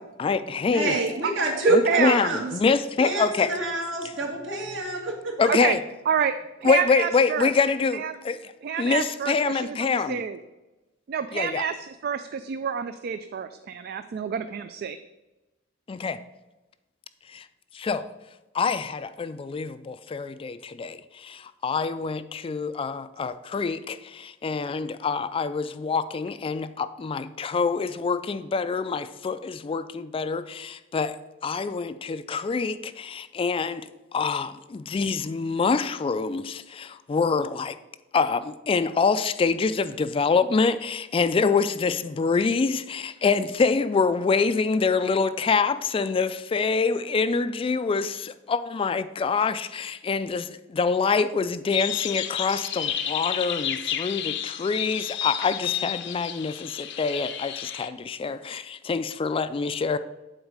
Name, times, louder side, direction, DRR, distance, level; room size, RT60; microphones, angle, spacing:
voice 1, 0.2-1.0 1.7-3.5 5.4-5.8 6.6-8.5 8.8-10.2 11.3-11.6 15.9-16.2 17.3-17.5 17.7-18.1 18.5-31.2 31.4-37.8 38.1-60.0, left 4 dB, 30° left, 0.3 m, -26 dB
voice 2, 0.7-2.5 3.0-5.5, right 2 dB, 70° right, 2.0 m, -28 dB
voice 3, 1.6-2.2 5.5-5.8 6.1-6.3 6.6-7.5 7.9-8.2 8.6-10.4 11.1-15.0, right 6 dB, 50° right, 0.3 m, -27 dB
sound 1, 51.7-57.9, left 10 dB, 65° left, 0.6 m, -31 dB
8.0 x 4.0 x 6.5 m
head